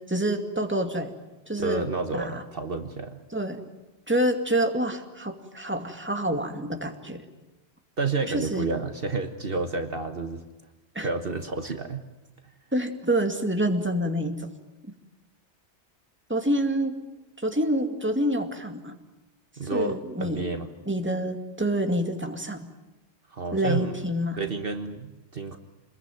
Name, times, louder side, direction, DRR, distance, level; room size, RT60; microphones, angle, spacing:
voice 1, 0.1-1.1 1.5-1.9 2.1-2.4 3.3-3.6 4.1-7.2 8.3-8.6 10.9-11.1 12.7-14.5 16.3-17.0 17.4-18.9 19.7-20.4 20.9-22.6 23.5-24.4, right 1 dB, 10° right, 4 dB, 2.3 m, -27 dB
voice 2, 1.6-3.2 8.0-10.4 11.0-12.1 19.6-20.7 23.3-24.0 24.3-25.6, right 3 dB, 55° right, 7 dB, 1.5 m, -30 dB
27.0 x 21.5 x 9.3 m, 1.0 s
omnidirectional pair, 1.2 m